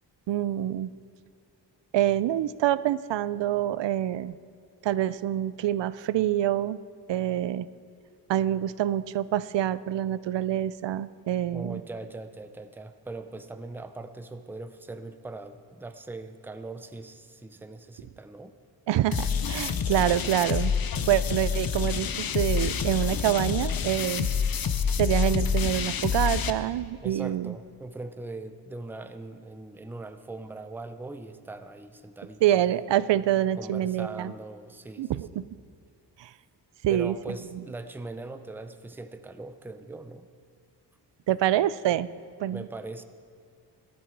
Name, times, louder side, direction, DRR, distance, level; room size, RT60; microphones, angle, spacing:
voice 1, 0.3-0.9 1.9-4.4 4.8-6.8 7.1-7.7 8.3-11.8 18.9-20.7 21.1-24.3 25.0-27.6 32.4-34.3 35.0-35.5 36.2-36.3 36.8-37.4 41.3-42.1 42.4-42.7, right 12 dB, 80° right, 17 dB, 0.5 m, -26 dB
voice 2, 11.5-18.5 27.0-32.6 33.6-35.4 36.9-40.3 42.5-43.0, right 2 dB, 5° right, 9 dB, 0.4 m, -40 dB
sound 1, 19.1-26.5, left 6 dB, 55° left, 0.7 m, -27 dB
17.0 x 12.0 x 4.6 m, 2.2 s
wide cardioid pair, 165°, 42 cm